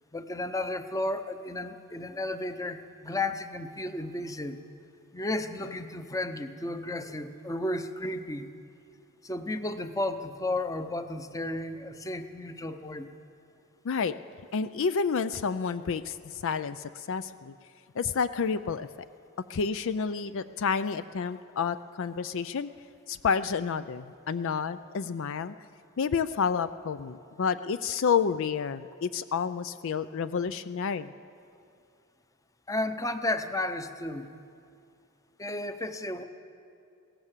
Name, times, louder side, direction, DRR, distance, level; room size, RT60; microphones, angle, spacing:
voice 1, 0.1-4.6 5.1-8.5 9.2-13.1 32.7-34.3 35.4-36.2, left 1 dB, 15° left, 9 dB, 0.8 m, -33 dB
voice 2, 13.8-14.2 14.5-17.5 18.0-18.9 19.5-22.7 23.1-25.5 26.0-31.1, left 6 dB, 60° left, 13 dB, 0.4 m, -29 dB
21.5 x 17.5 x 7.4 m, 2.5 s
head